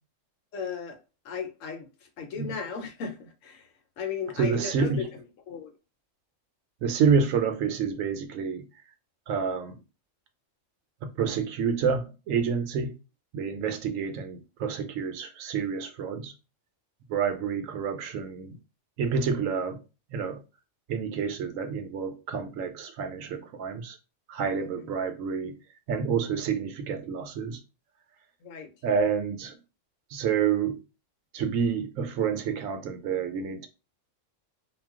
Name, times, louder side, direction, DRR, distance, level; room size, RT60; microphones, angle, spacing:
voice 1, 0.5-1.0 1.2-3.7 4.0-5.1 5.5-5.7 24.6-24.9 28.4-28.7, left 6 dB, 75° left, 1.0 m, -36 dB
voice 2, 4.4-5.0 6.8-8.6 9.3-9.8 11.2-12.9 13.3-16.3 17.1-18.5 19.0-19.8 20.1-20.4 20.9-24.0 24.3-25.5 25.9-27.6 28.8-29.5 30.1-30.8 31.3-33.7, right 6 dB, 80° right, 1.0 m, -28 dB
2.3 x 2.2 x 3.5 m
omnidirectional pair, 1.4 m